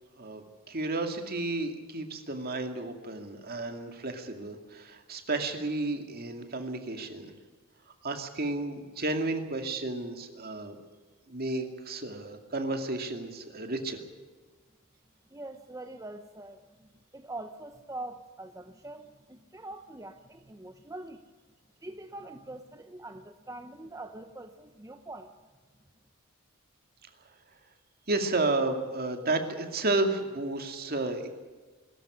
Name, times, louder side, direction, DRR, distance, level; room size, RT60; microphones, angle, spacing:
voice 1, 0.2-7.3 8.0-10.8 11.3-14.0 28.1-31.3, right 2 dB, 45° right, 5 dB, 2.4 m, -32 dB
voice 2, 15.3-21.2 21.8-25.3, right 2 dB, 15° right, 6 dB, 0.8 m, -44 dB
22.0 x 13.5 x 9.9 m, 1.4 s
head